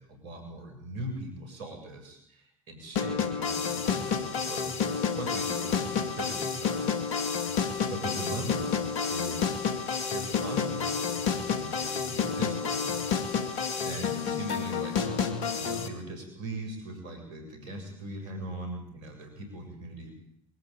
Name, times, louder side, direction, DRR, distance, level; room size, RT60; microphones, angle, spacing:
voice 1, 0.0-7.6 7.9-8.8 9.1-9.6 10.1-13.0 13.8-15.0 15.6-20.1, right 1 dB, 70° right, 4 dB, 7.4 m, -40 dB
sound 1, 2.9-15.9, left 6 dB, 70° left, 2.4 m, -30 dB
23.0 x 14.0 x 9.0 m, 0.72 s
figure-of-eight pair, 65°, 17 cm